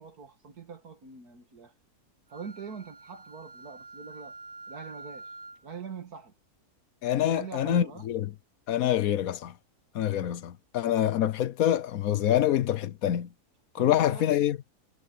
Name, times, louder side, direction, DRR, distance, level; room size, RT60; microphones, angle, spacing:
voice 1, 0.0-1.7 2.3-4.4 4.7-5.3 5.6-6.3 7.3-8.1 13.7-14.3, right 6 dB, 85° right, 2.4 m, -43 dB
Wind instrument woodwind instrument, 2.3-5.7, right 3 dB, 45° right, 2.8 m, -47 dB
voice 2, 7.0-8.3 8.7-9.5 9.9-13.3 13.7-14.6, left 11 dB, 75° left, 1.2 m, -26 dB
omnidirectional pair, 1.6 m